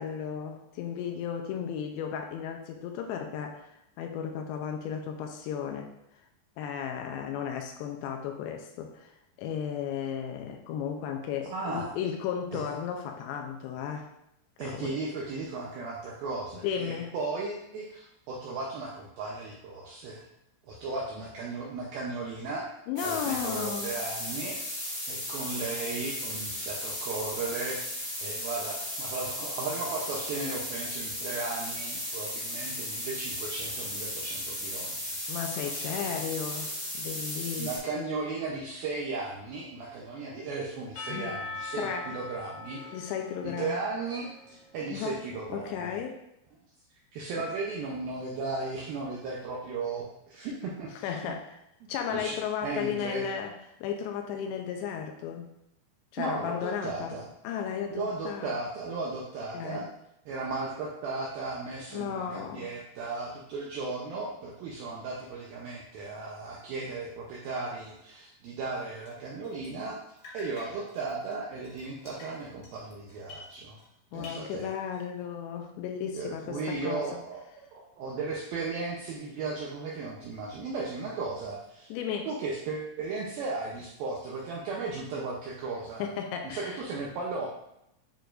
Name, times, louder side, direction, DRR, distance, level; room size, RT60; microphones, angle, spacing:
voice 1, 0.0-5.9 6.6-14.1 14.6-15.0 16.5-17.1 22.9-24.0 35.3-38.2 41.1-41.3 41.8-42.1 42.9-43.8 44.9-45.2 45.5-46.2 51.0-51.6 51.9-53.5 53.8-55.5 56.1-57.2 57.4-58.5 59.5-59.9 61.9-62.7 74.1-77.1 81.9-82.3 86.0-86.8, left 8 dB, 85° left, 4 dB, 2.7 m, -34 dB
voice 2, 11.5-11.9 12.5-12.6 14.6-20.3 20.6-22.7 23.0-24.8 25.1-27.9 28.2-35.2 35.7-36.2 37.6-42.8 43.4-46.0 47.1-51.4 51.8-52.3 52.6-53.3 56.2-57.3 57.9-59.9 60.3-70.0 70.3-73.8 74.1-74.7 76.1-81.9 82.3-86.1 86.4-87.5, right 3 dB, 80° right, -3 dB, 2.1 m, -36 dB
sound 1, 23.0-37.8, left 1 dB, 15° left, 1.3 m, -35 dB
Percussion / Church bell, 41.0-45.1, left 3 dB, 70° left, 1.8 m, -42 dB
Drip, 68.7-69.9 70.2-73.9 74.2-75.2, left 2 dB, 50° left, 2.0 m, -50 dB
9.1 x 4.7 x 2.5 m, 0.81 s
omnidirectional pair, 5.2 m